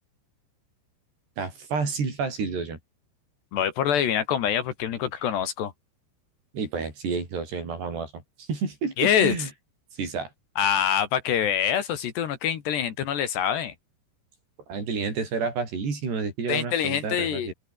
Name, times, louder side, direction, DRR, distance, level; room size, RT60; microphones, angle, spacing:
voice 1, 1.4-2.8 6.5-9.5 10.0-10.3 14.7-17.5, right 5 dB, 60° right, 8.6 m, -30 dB
voice 2, 3.5-5.7 9.0-9.4 10.6-13.7 16.5-17.5, left 9 dB, 65° left, 4.1 m, -25 dB
open air
omnidirectional pair, 5.4 m